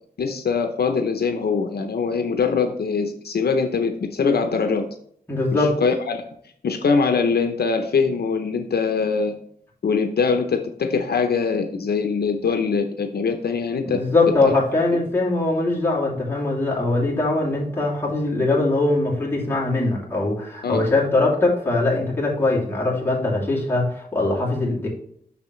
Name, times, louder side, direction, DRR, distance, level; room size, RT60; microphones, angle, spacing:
voice 1, 0.2-4.9 5.5-6.2 6.6-9.3 9.8-14.0 14.4-14.5 20.6-20.8, left 5 dB, 70° left, 6 dB, 0.6 m, -22 dB
voice 2, 5.3-5.8 13.8-24.9, left 2 dB, 15° left, -5 dB, 2.5 m, -21 dB
7.0 x 6.2 x 3.1 m, 0.66 s
wide cardioid pair, 140°, 17 cm